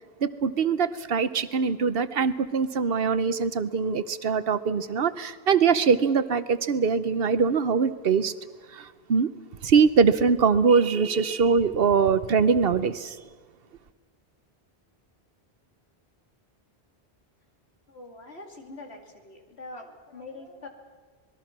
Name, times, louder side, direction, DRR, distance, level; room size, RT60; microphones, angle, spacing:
voice 1, 0.2-8.3 8.7-9.3 9.6-13.2, right 5 dB, 65° right, 13 dB, 1.0 m, -23 dB
voice 2, 17.9-20.7, left 2 dB, 80° left, 3 dB, 3.0 m, -43 dB
26.5 x 20.5 x 6.0 m, 1.5 s
omnidirectional pair, 1.1 m